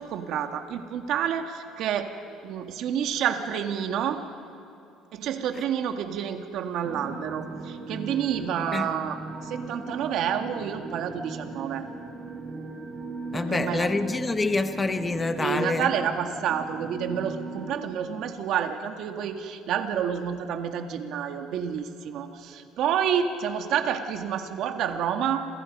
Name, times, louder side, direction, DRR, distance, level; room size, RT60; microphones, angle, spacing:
voice 1, 0.0-2.1 2.4-4.2 5.1-11.9 13.3-13.9 15.4-25.5, right 8 dB, 60° right, 6 dB, 2.0 m, -29 dB
sound 1, 6.8-17.7, right 3 dB, 20° right, 2.3 m, -38 dB
voice 2, 13.3-15.9, left 3 dB, 15° left, 9 dB, 0.9 m, -26 dB
30.0 x 28.0 x 5.5 m, 2.7 s
cardioid pair, 145°, 0 cm